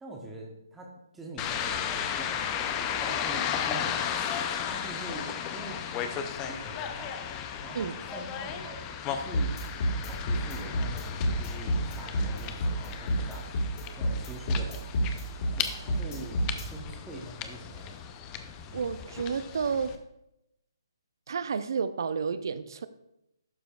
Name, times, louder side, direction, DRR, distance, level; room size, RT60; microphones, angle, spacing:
voice 1, 0.0-4.3 4.7-7.3 7.6-9.5 10.1-13.5 14.0-15.1 15.5-17.9, right 1 dB, 5° right, -2 dB, 0.9 m, -44 dB
sound 1, 1.4-20.0, left 8 dB, 20° left, 0.5 m, -35 dB
sound 2, 9.3-16.6, equal, 50° left, 2.3 m, -28 dB
voice 2, 18.7-20.0 21.3-22.9, right 6 dB, 60° right, 13 dB, 0.5 m, -31 dB
11.5 x 5.1 x 2.4 m, 0.85 s
figure-of-eight pair, 150°, 2 cm